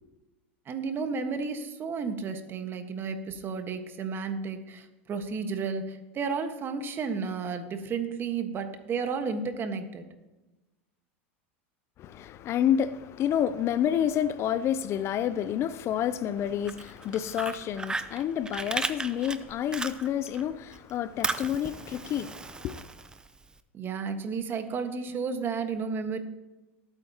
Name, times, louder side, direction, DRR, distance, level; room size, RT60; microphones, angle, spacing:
voice 1, 0.7-10.0 23.7-26.2, right 5 dB, 35° right, 1.5 m, -32 dB
voice 2, 12.0-22.4 22.6-22.8, left 10 dB, 40° left, 0.5 m, -29 dB
Fire, 16.5-20.4 20.7-23.5, right 3 dB, 10° right, 0.7 m, -35 dB
20.0 x 8.9 x 2.9 m
hypercardioid pair, 100°, 7 cm